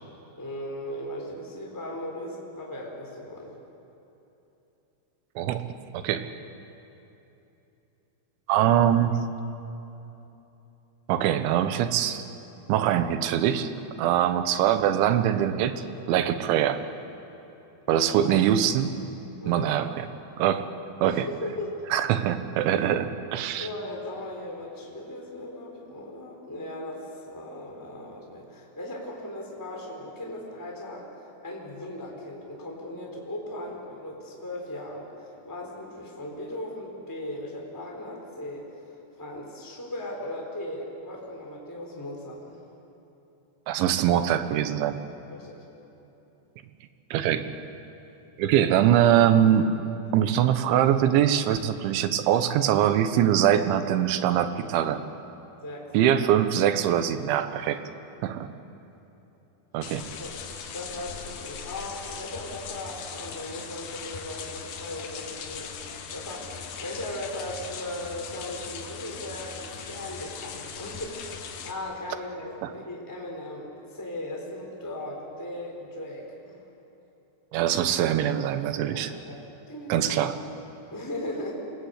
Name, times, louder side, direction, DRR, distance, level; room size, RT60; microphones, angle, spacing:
voice 1, 0.4-3.5 14.0-14.2 17.9-18.3 19.4-19.9 21.0-21.8 23.6-38.6 39.2-42.6 45.3-45.6 55.6-55.9 60.2-60.3 60.7-65.8 66.1-76.6 78.8-80.1 80.9-81.5, left 1 dB, 5° left, -1 dB, 3.3 m, -38 dB
voice 2, 5.4-5.7 5.9-6.3 8.5-9.2 11.1-12.2 12.7-13.7 14.0-15.8 16.1-16.8 17.9-18.9 19.5-20.1 20.4-20.7 21.0-21.3 21.9-23.7 43.7-45.0 47.1-47.4 48.4-49.7 50.1-55.0 55.9-57.8 58.2-58.5 59.7-60.0 72.6-72.7 77.5-79.1 79.9-80.4, right 10 dB, 80° right, 10 dB, 3.4 m, -23 dB
sound 1, 59.8-71.7, left 6 dB, 60° left, 2.2 m, -39 dB
27.0 x 20.0 x 8.2 m, 3.0 s
omnidirectional pair, 5.3 m